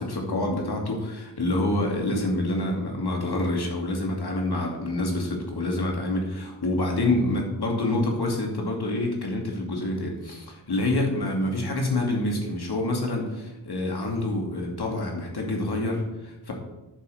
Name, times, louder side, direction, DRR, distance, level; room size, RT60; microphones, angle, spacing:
voice 1, 0.0-16.5, left 2 dB, 60° left, 1 dB, 2.6 m, -27 dB
10.0 x 5.7 x 6.7 m, 1.0 s
cardioid pair, 65°, 44 cm